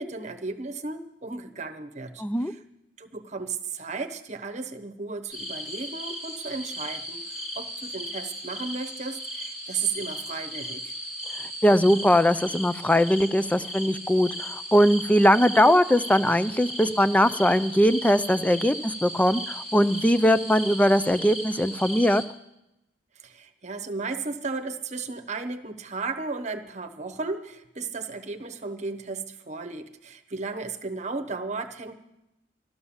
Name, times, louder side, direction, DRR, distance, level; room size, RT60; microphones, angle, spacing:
voice 1, 0.0-2.6 3.0-10.9 23.2-31.9, right 4 dB, 40° right, 7 dB, 1.0 m, -34 dB
voice 2, 2.2-2.5 11.6-22.2, equal, 10° left, 13 dB, 0.4 m, -21 dB
sound 1, 5.3-22.2, equal, 35° left, 2.3 m, -36 dB
13.0 x 13.0 x 7.2 m, 0.90 s
head